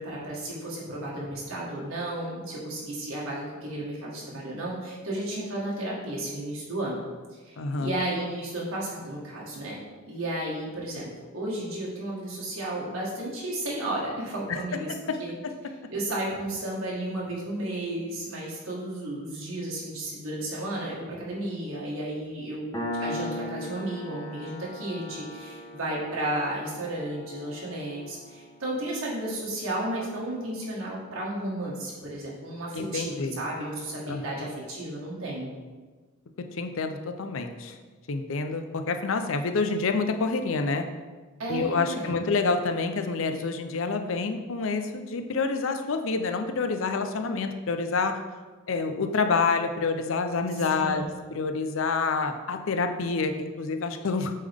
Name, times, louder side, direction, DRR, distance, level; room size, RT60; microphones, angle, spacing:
voice 1, 0.0-7.0 7.4-9.8 10.1-11.1 11.3-14.9 15.2-15.3 15.9-22.7 23.0-35.5 41.4-42.2 50.6-51.1, right 1 dB, 80° right, -5 dB, 1.6 m, -33 dB
voice 2, 7.6-7.9 14.5-14.6 14.9-15.2 15.4-15.5 32.7-33.4 34.1-34.4 36.5-37.8 38.1-40.9 41.5-48.2 48.7-54.3, left 4 dB, 65° left, 7 dB, 0.5 m, -28 dB
Piano, 22.7-29.9, left 1 dB, 15° left, 0.9 m, -39 dB
8.3 x 3.7 x 3.5 m, 1.4 s
head